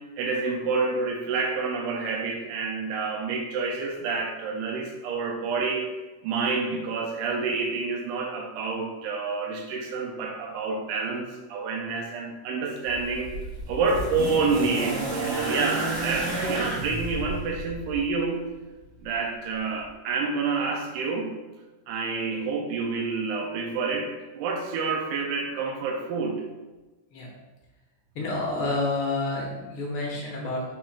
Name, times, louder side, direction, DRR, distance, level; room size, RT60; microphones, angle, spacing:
voice 1, 0.2-5.9 6.2-13.4 13.7-18.5 19.0-21.3 21.9-26.4, right 4 dB, 90° right, 1 dB, 2.1 m, -28 dB
sound 1, 12.8-18.1 19.1-19.2, right 2 dB, 55° right, 1.5 m, -31 dB
voice 2, 28.1-30.6, left 2 dB, 70° left, -3 dB, 1.3 m, -29 dB
5.7 x 3.8 x 2.4 m, 1.1 s
omnidirectional pair, 3.5 m